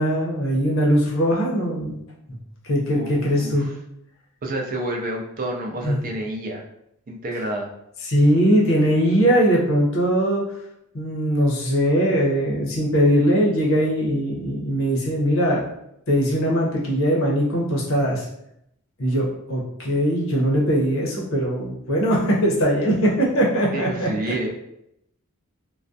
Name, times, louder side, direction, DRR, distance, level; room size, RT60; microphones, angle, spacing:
voice 1, 0.0-2.0 2.7-3.7 5.8-6.0 8.1-10.4 10.9-15.6 16.1-18.3 19.0-24.1, equal, 65° left, -3 dB, 0.7 m, -20 dB
voice 2, 2.9-3.7 4.4-6.6 7.1-7.7 23.7-24.5, right 1 dB, 40° right, 1 dB, 0.4 m, -29 dB
2.3 x 2.1 x 2.5 m, 0.78 s
head